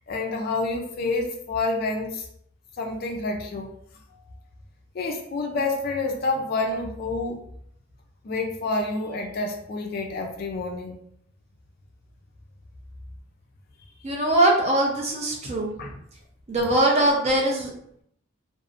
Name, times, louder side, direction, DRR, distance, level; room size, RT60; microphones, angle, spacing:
voice 1, 0.1-2.3 2.8-3.8 4.9-7.5 8.2-11.0 15.8-15.9, left 3 dB, 45° left, 2 dB, 0.3 m, -28 dB
voice 2, 14.0-16.0 16.5-17.7, right 1 dB, 30° right, -1 dB, 0.5 m, -22 dB
2.6 x 2.0 x 2.4 m, 0.69 s
head